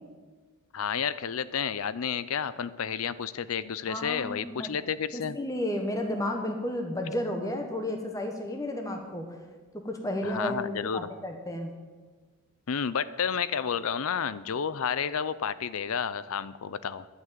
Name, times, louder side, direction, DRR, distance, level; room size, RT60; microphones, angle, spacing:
voice 1, 0.7-5.4 10.2-11.1 12.7-17.1, left 7 dB, 80° left, 16 dB, 0.5 m, -31 dB
voice 2, 3.9-4.8 5.1-9.4 9.7-11.7, left 1 dB, 15° left, 3 dB, 1.1 m, -32 dB
11.5 x 6.2 x 9.0 m, 1.4 s
head